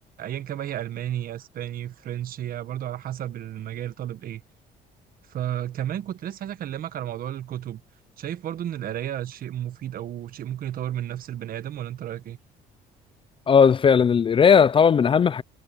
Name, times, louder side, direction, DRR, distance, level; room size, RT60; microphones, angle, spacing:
voice 1, 0.2-4.4 5.3-7.8 8.2-12.4, right 11 dB, 60° right, 1.4 m, -32 dB
voice 2, 13.5-15.4, left 6 dB, 30° left, 0.5 m, -17 dB
cardioid pair, 110°, 17 cm